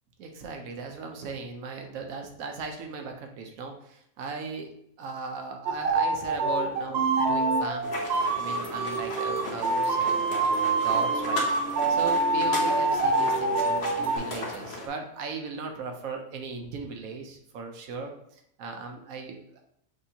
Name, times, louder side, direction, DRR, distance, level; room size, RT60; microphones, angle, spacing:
voice 1, 0.2-7.9 8.4-11.4 11.9-19.6, right 4 dB, 85° right, 4 dB, 1.2 m, -38 dB
sound 1, 5.7-14.2, right 3 dB, 65° right, 0.7 m, -26 dB
sound 2, 7.8-14.9, left 2 dB, 50° left, 1.1 m, -37 dB
6.5 x 2.7 x 2.8 m, 0.72 s
omnidirectional pair, 1.4 m